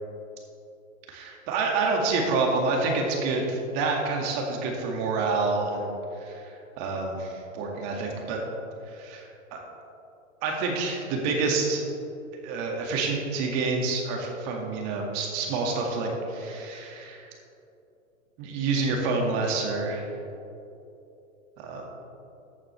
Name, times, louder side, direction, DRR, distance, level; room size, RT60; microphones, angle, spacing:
voice 1, 1.1-5.9 6.2-8.4 8.9-9.6 10.4-11.8 12.4-17.3 18.4-20.1 21.6-21.9, right 3 dB, 40° right, 0 dB, 2.2 m, -28 dB
14.5 x 8.7 x 3.4 m, 2.8 s
hypercardioid pair, 120°, 41 cm